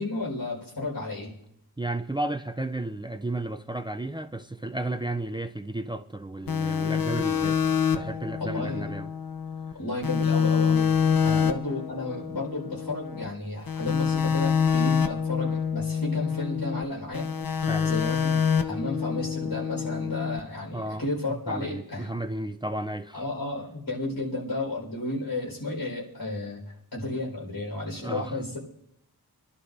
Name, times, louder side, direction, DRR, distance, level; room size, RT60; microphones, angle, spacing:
voice 1, 0.0-1.4 8.4-8.9 9.7-10.9 11.2-17.3 17.8-22.1 23.1-28.6, left 2 dB, 85° left, 4.6 m, -33 dB
voice 2, 1.8-7.6 7.9-9.1 11.2-11.5 17.7-17.9 20.7-21.0 21.3-23.2 27.9-28.4, right 1 dB, 10° right, 0.5 m, -33 dB
sound 1, 6.5-9.7 10.0-13.3 13.7-16.8 17.1-20.4, left 7 dB, 65° left, 0.8 m, -26 dB
26.0 x 11.5 x 2.6 m
wide cardioid pair, 60°, 38 cm